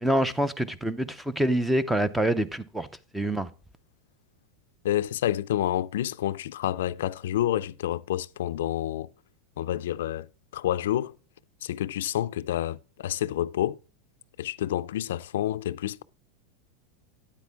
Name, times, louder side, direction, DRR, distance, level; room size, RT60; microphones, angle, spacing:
voice 1, 0.0-2.9 3.1-3.5, right 1 dB, 5° right, 0.4 m, -26 dB
voice 2, 4.8-9.1 9.6-10.3 10.5-11.1 11.6-13.8 14.4-16.0, left 12 dB, 85° left, 0.3 m, -28 dB
9.1 x 8.1 x 3.4 m
supercardioid pair, 155°, 0 cm